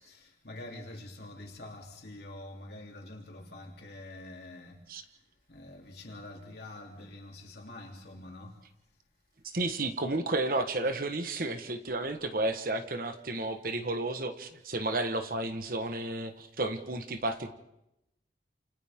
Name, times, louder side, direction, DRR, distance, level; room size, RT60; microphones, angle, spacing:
voice 1, 0.0-4.8 5.5-8.6, left 1 dB, 60° left, 3.5 m, -46 dB
voice 2, 9.5-17.5, right 2 dB, 50° right, 1.4 m, -32 dB
29.5 x 28.0 x 3.7 m
head